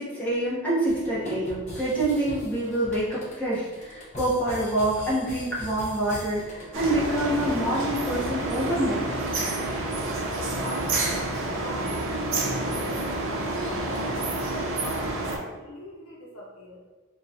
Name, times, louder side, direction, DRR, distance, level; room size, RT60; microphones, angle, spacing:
voice 1, 0.0-9.0, right 1 dB, 5° left, -9 dB, 1.0 m, -26 dB
sound 1, 0.9-14.2, left 1 dB, 35° left, 0.9 m, -43 dB
sound 2, 6.7-15.4, right 2 dB, 65° right, 0.6 m, -29 dB
voice 2, 10.4-12.7 13.2-16.8, equal, 70° left, -4 dB, 0.7 m, -42 dB
3.9 x 2.3 x 2.7 m, 1.3 s
head